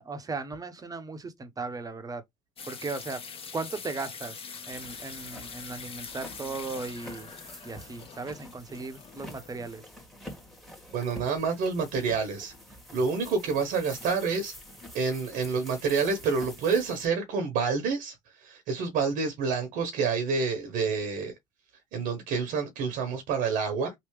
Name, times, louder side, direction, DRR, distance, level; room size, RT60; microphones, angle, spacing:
voice 1, 0.0-2.2 2.6-3.2 3.5-4.3 4.6-7.3 7.6-9.8, right 3 dB, 25° right, 1.0 m, -37 dB
sound 1, 2.6-9.8, left 5 dB, 40° left, 1.4 m, -44 dB
sound 2, 4.7-17.1, equal, ahead, 1.7 m, -47 dB
voice 2, 10.9-12.5 12.9-14.5 14.9-21.3 21.9-23.9, right 5 dB, 70° right, 1.1 m, -28 dB
3.3 x 2.7 x 3.2 m
supercardioid pair, 80°, 15 cm